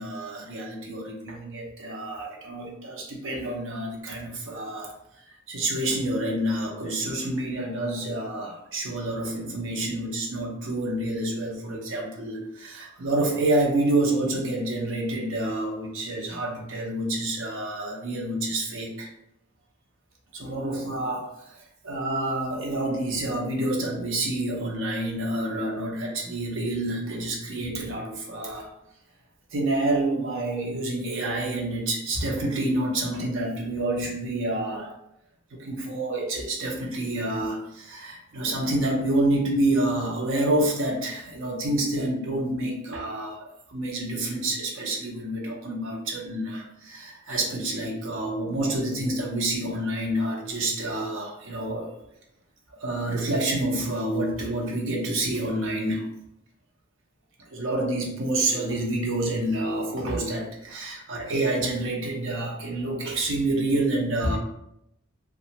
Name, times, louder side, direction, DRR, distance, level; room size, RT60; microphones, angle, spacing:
voice 1, 0.0-4.9 5.5-19.1 20.3-21.5 21.8-28.7 29.5-34.9 35.6-51.9 52.8-56.1 57.5-64.4, right 1 dB, 70° right, -1 dB, 0.6 m, -28 dB
2.8 x 2.2 x 2.8 m, 0.81 s
head